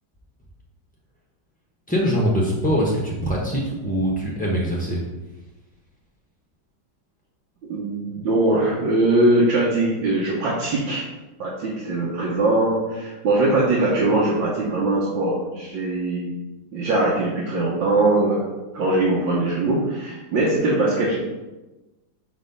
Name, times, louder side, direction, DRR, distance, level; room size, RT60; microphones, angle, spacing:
voice 1, 1.9-5.0, equal, 15° left, -4 dB, 0.3 m, -23 dB
voice 2, 7.7-11.1 11.4-16.3 16.7-18.4 18.7-21.2, right 2 dB, 80° right, -6 dB, 1.8 m, -21 dB
5.3 x 4.1 x 5.4 m, 1.1 s
omnidirectional pair, 2.1 m